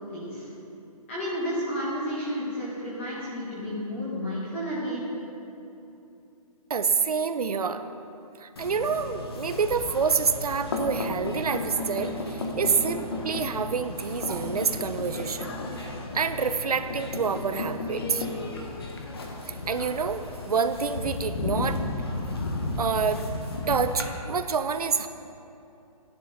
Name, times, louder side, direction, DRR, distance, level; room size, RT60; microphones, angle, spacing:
voice 1, 0.1-0.5 1.1-5.1, equal, 20° left, -8 dB, 1.5 m, -31 dB
voice 2, 6.7-7.8 8.4-15.5 15.8-15.9 16.1-18.3 19.5-21.8 22.8-23.3 23.7-25.1, right 5 dB, 75° right, 10 dB, 0.7 m, -27 dB
sound 1, 8.6-24.1, left 2 dB, 40° left, 1.2 m, -33 dB
12.0 x 10.5 x 4.3 m, 2.8 s
hypercardioid pair, 180°, 20 cm